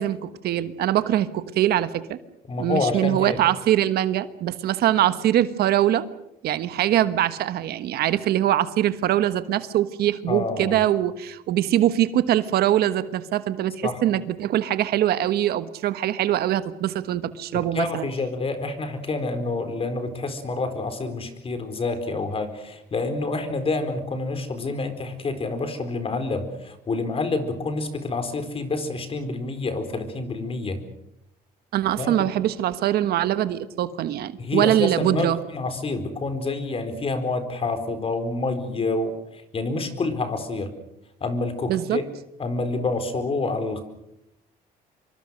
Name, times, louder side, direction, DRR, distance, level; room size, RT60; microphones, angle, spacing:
voice 1, 0.0-2.2 2.6-6.1 6.4-18.1 31.7-35.4 41.7-42.0, right 12 dB, 70° right, 13 dB, 1.3 m, -23 dB
voice 2, 2.5-3.4 10.3-10.8 13.8-14.0 17.5-30.8 32.0-32.1 34.4-40.7 41.2-42.0 42.4-43.8, left 3 dB, 35° left, 9 dB, 4.4 m, -28 dB
25.5 x 24.0 x 6.4 m, 0.82 s
cardioid pair, 110°, 17 cm